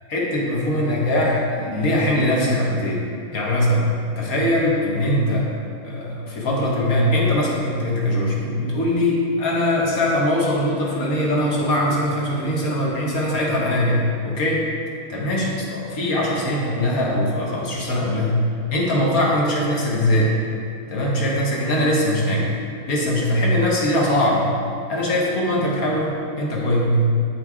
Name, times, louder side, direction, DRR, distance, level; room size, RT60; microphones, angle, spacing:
voice 1, 0.1-3.0 3.3-5.5 5.8-14.7 15.1-18.4 18.7-20.4 20.9-22.6 22.9-24.5 24.9-27.0, left 1 dB, 45° left, -3 dB, 1.7 m, -21 dB
14.0 x 4.9 x 3.7 m, 2.4 s
omnidirectional pair, 2.3 m